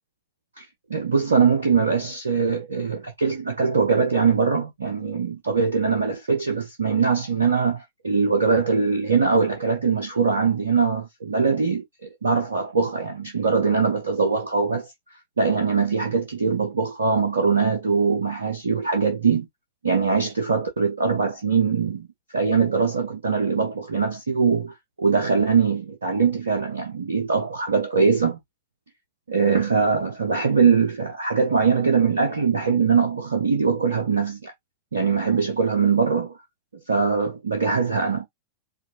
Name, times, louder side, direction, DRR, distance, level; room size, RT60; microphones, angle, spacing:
voice 1, 0.6-14.9 15.4-19.5 19.8-22.1 22.3-28.4 29.3-34.5 34.9-36.3 36.9-38.3, right 5 dB, 75° right, 0.9 m, -22 dB
5.0 x 2.6 x 2.9 m
figure-of-eight pair, 90°, 0 cm